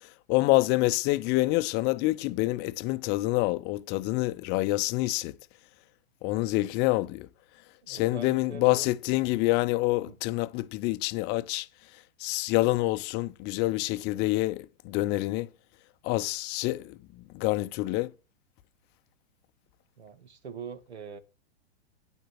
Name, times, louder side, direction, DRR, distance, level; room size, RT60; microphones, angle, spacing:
voice 1, 0.3-5.3 6.2-7.3 7.9-11.7 12.2-15.5 16.0-18.1, left 19 dB, 30° left, 0.6 m, -27 dB
voice 2, 7.8-8.9 10.0-10.2 20.0-21.2, right 5 dB, 75° right, 1.7 m, -43 dB
9.8 x 7.4 x 5.9 m
figure-of-eight pair, 105°, 33 cm